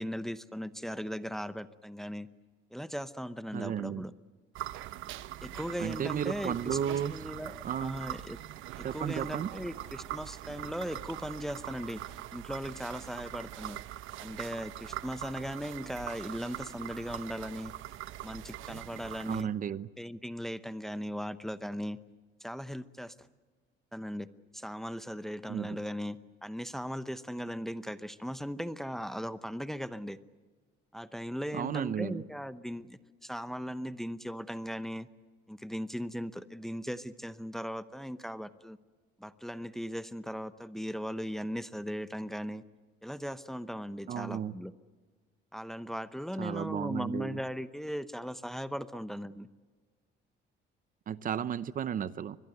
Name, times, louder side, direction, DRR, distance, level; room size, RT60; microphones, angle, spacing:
voice 1, 0.0-2.3 2.7-4.1 5.4-8.4 8.8-12.0 12.3-13.8 14.2-17.7 18.2-19.5 20.0-22.0 22.4-23.3 23.9-24.3 24.5-30.2 30.9-35.1 35.5-38.8 39.2-42.6 43.0-44.7 45.5-49.5, equal, ahead, 13 dB, 0.8 m, -38 dB
voice 2, 3.5-4.0 5.8-7.1 7.6-7.9 8.8-9.5 19.3-19.9 25.5-25.8 31.5-32.2 44.1-44.5 46.4-47.4 51.1-52.4, right 9 dB, 45° right, 16 dB, 0.7 m, -33 dB
sound 1, 4.5-19.4, right 14 dB, 85° right, 1.0 m, -42 dB
23.5 x 22.0 x 7.9 m, 1.4 s
cardioid pair, 125°, 20 cm